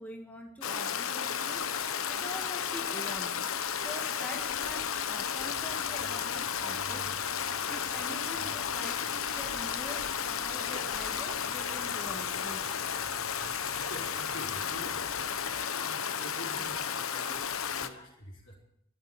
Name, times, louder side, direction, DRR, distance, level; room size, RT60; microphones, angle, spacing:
voice 1, 0.0-1.7 2.1-3.3 3.8-7.1 7.7-12.7, equal, 5° left, 1 dB, 1.9 m, -44 dB
Stream, 0.6-17.9, left 7 dB, 85° left, 1.0 m, -33 dB
sound 1, 5.4-15.7, right 3 dB, 90° right, 1.2 m, -52 dB
voice 2, 13.9-15.0 15.8-18.5, left 1 dB, 65° left, -6 dB, 4.3 m, -46 dB
13.0 x 12.0 x 8.6 m, 0.73 s
head